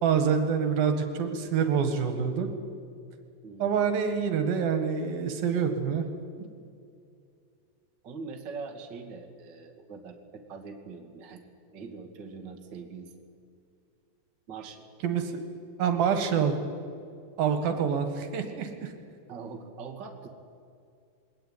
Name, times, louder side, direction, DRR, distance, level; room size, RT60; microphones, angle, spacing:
voice 1, 0.0-2.5 3.6-6.1 15.0-15.3 15.8-16.5 17.4-18.9, right 7 dB, 75° right, 7 dB, 3.5 m, -26 dB
voice 2, 8.0-11.4 11.7-13.1 14.5-14.8 17.6-17.9 19.3-20.3, right 4 dB, 35° right, 3 dB, 2.5 m, -42 dB
22.0 x 18.5 x 9.2 m, 2.4 s
omnidirectional pair, 4.3 m